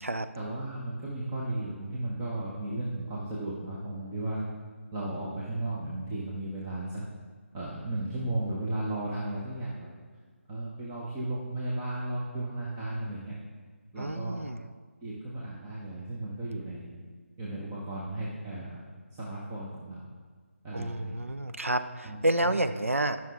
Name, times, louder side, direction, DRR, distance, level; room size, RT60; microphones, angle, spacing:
voice 1, 0.4-4.5 4.9-7.1 7.5-9.9 10.5-13.3 13.9-14.4 15.0-16.9 17.4-18.8 19.1-20.1 20.6-21.1 22.0-22.2, right 1 dB, 15° right, -7 dB, 1.1 m, -35 dB
voice 2, 14.0-14.6 20.7-23.2, right 1 dB, 80° right, 10 dB, 0.6 m, -29 dB
18.0 x 6.1 x 3.7 m, 1.5 s
figure-of-eight pair, 150°, 7 cm